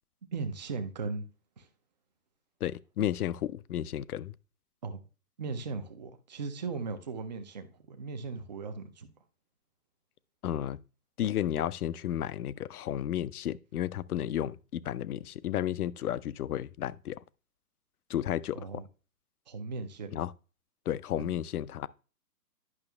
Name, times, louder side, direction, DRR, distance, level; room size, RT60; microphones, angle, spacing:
voice 1, 0.3-1.3 1.6-1.7 4.8-5.0 5.4-9.1 18.5-18.9 19.5-20.2 21.2-21.3, right 4 dB, 30° right, 0.5 m, -38 dB
voice 2, 2.6-4.3 10.4-10.8 11.2-17.2 18.1-18.8 20.1-20.3 20.9-21.9, left 11 dB, 65° left, 0.5 m, -32 dB
11.0 x 6.0 x 2.2 m
hypercardioid pair, 140°, 49 cm